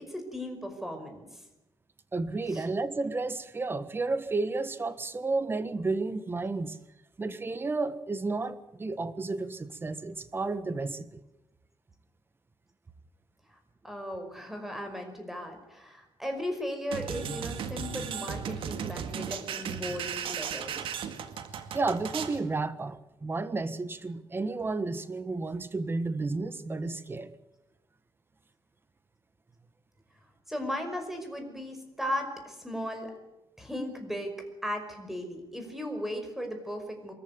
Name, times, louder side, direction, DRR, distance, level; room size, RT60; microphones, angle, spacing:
voice 1, 0.0-1.4 2.5-2.6 13.5-13.6 13.8-21.0 30.5-33.1 33.6-34.3 34.6-37.1, equal, 5° right, 5 dB, 5.3 m, -36 dB
voice 2, 2.1-6.8 7.2-11.2 21.7-27.3, right 3 dB, 25° right, 13 dB, 1.5 m, -32 dB
sound 1, 16.9-22.4, right 7 dB, 80° right, 2.1 m, -36 dB
23.5 x 14.5 x 9.5 m, 0.97 s
cardioid pair, 120°, 9 cm